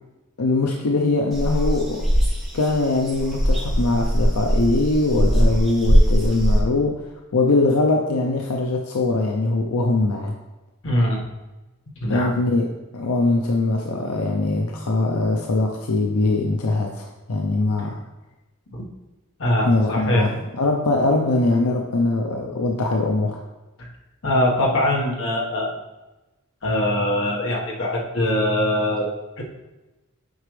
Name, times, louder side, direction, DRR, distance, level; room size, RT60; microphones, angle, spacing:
voice 1, 0.4-2.1 2.5-10.4 12.1-18.0 19.6-23.4, left 2 dB, 90° left, 1 dB, 0.6 m, -22 dB
sound 1, 1.3-6.6, equal, ahead, 2.3 m, -20 dB
voice 2, 10.8-11.2 12.0-12.3 18.7-18.8 19.4-20.3 24.2-25.8 26.6-29.4, left 1 dB, 65° left, -2 dB, 1.4 m, -22 dB
8.0 x 5.0 x 3.2 m, 1.1 s
head